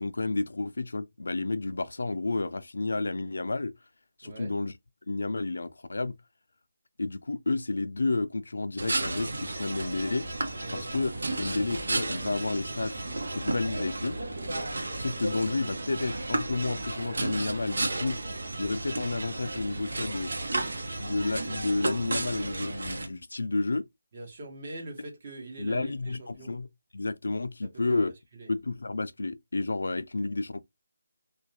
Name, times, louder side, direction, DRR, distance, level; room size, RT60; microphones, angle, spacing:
voice 1, 0.0-3.7 4.2-4.7 5.1-6.2 7.0-10.3 10.7-11.1 11.4-13.0 13.3-14.2 15.0-18.2 18.6-20.3 21.0-23.9 25.6-26.7 26.9-28.1 28.5-30.6, left 3 dB, 80° left, 0.4 m, -31 dB
voice 2, 4.2-4.5 10.6-10.9 24.1-26.5 27.6-28.0 28.3-28.5, right 2 dB, 35° right, 1.0 m, -43 dB
sound 1, 8.8-23.1, right 2 dB, 75° right, 0.8 m, -33 dB
2.5 x 2.1 x 2.9 m
figure-of-eight pair, 170°, 0 cm